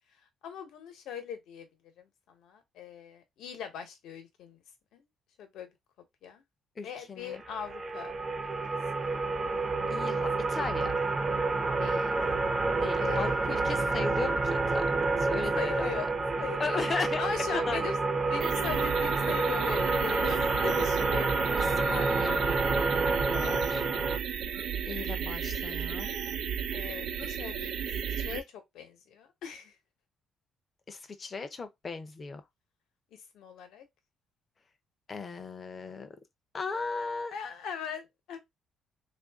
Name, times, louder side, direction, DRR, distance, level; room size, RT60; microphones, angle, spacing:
voice 1, 0.4-1.7 2.0-4.6 4.9-5.0 5.4-5.7 6.2-6.4 6.8-8.1 8.4-8.5 9.0-9.2 9.8-9.9 11.8-12.2 13.0-13.5 15.6-16.1 16.4-16.8 17.2-18.0 18.3-21.3 23.1-23.5 26.7-27.7 28.0-29.8 33.1-33.9 37.3-38.4, left 7 dB, 75° left, 1.0 m, -40 dB
voice 2, 6.8-7.4 9.9-10.9 12.8-14.8 15.2-16.0 16.6-17.2 17.5-17.8 21.6-22.4 23.3-23.8 24.8-26.1 30.9-32.4 35.1-36.1 36.5-37.3, left 4 dB, 25° left, 0.5 m, -36 dB
sound 1, 7.4-24.2, right 3 dB, 25° right, 0.5 m, -29 dB
sound 2, 18.4-28.4, right 8 dB, 70° right, 0.6 m, -34 dB
3.5 x 2.5 x 3.5 m
cardioid pair, 165°, 0 cm